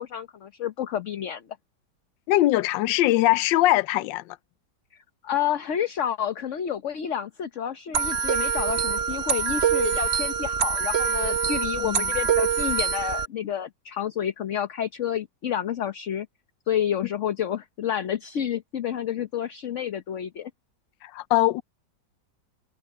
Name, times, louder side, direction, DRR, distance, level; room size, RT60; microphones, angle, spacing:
voice 1, 0.0-1.4 5.2-16.3 16.7-20.5, left 9 dB, 50° left, 1.1 m, -29 dB
voice 2, 2.3-4.4 11.8-12.0 21.0-21.6, left 16 dB, 85° left, 1.3 m, -22 dB
sound 1, 7.9-13.3, right 7 dB, 45° right, 1.1 m, -25 dB
omnidirectional pair, 2.0 m